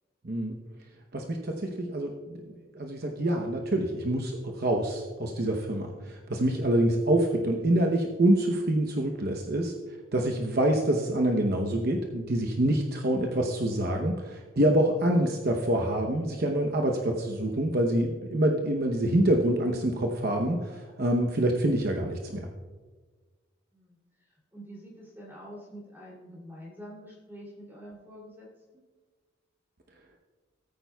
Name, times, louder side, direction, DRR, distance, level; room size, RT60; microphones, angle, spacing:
voice 1, 0.2-0.6 1.1-2.4 2.7-9.7 10.1-22.5, right 1 dB, 50° right, 2 dB, 0.9 m, -26 dB
voice 2, 24.3-28.5 28.7-28.8, equal, 10° right, -5 dB, 2.9 m, -46 dB
18.0 x 9.0 x 2.3 m, 1.4 s
head